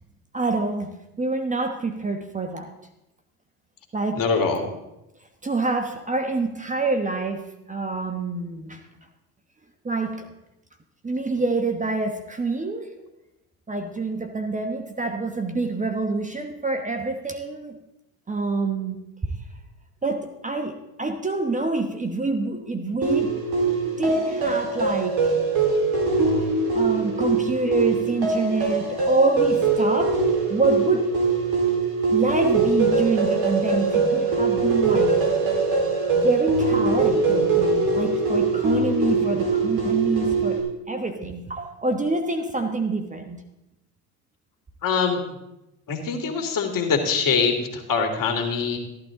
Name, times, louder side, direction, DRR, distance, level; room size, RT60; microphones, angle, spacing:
voice 1, 0.3-2.7 3.9-4.3 5.4-8.8 9.8-10.3 11.0-13.0 13.7-17.8 18.3-19.0 20.0-23.3 24.0-25.3 26.7-30.2 30.5-31.1 31.7-31.8 32.1-35.2 36.1-40.6 40.9-43.4, right 3 dB, 15° right, 6 dB, 1.2 m, -26 dB
voice 2, 4.1-4.7 44.8-45.2 45.9-48.8, left 5 dB, 45° left, 4 dB, 2.5 m, -23 dB
sound 1, 23.0-40.6, right 4 dB, 55° right, 4.1 m, -22 dB
14.0 x 12.0 x 3.8 m, 0.91 s
hypercardioid pair, 80°, 45 cm